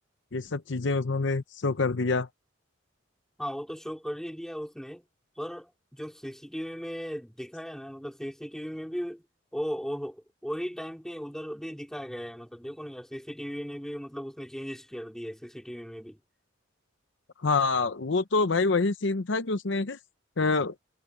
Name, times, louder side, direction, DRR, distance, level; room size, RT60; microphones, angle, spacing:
voice 1, 0.3-2.3 17.4-20.0 20.4-20.7, left 3 dB, 65° left, 0.8 m, -26 dB
voice 2, 3.4-5.0 5.4-9.2 9.5-16.2, equal, 5° left, 2.9 m, -37 dB
head